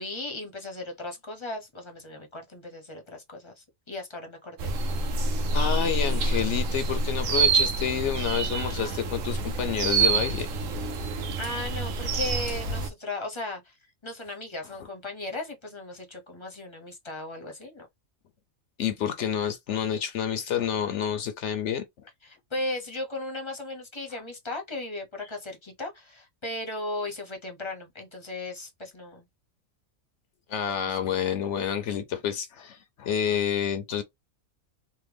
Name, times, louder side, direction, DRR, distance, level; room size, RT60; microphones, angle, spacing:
voice 1, 0.0-4.7 11.4-17.9 22.2-29.2 30.8-30.9, left 2 dB, 25° left, 0.7 m, -36 dB
sound 1, 4.6-12.9, right 3 dB, 75° right, 1.1 m, -27 dB
voice 2, 5.5-10.5 18.8-21.8 30.5-34.0, left 8 dB, 65° left, 0.9 m, -29 dB
3.5 x 2.2 x 3.3 m
omnidirectional pair, 1.4 m